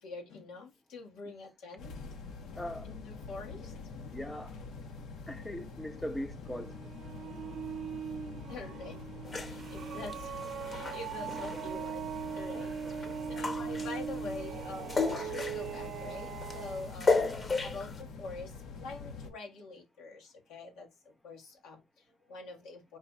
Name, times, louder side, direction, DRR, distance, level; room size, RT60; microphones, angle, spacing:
voice 1, 0.0-1.9 2.8-3.7 8.5-9.0 9.4-10.4 10.7-17.2 17.6-20.9 21.2-23.0, left 3 dB, 90° left, 1.5 m, -45 dB
sound 1, 1.8-19.3, left 4 dB, 70° left, 0.9 m, -45 dB
voice 2, 2.6-2.9 4.1-4.6 5.3-6.8 12.5-12.7 17.1-17.4, equal, 10° left, 0.5 m, -40 dB
sound 2, 6.4-16.9, right 7 dB, 65° right, 0.5 m, -40 dB
sound 3, 9.2-18.0, left 3 dB, 35° left, 0.9 m, -35 dB
4.8 x 2.3 x 4.0 m
cardioid pair, 100°, 0 cm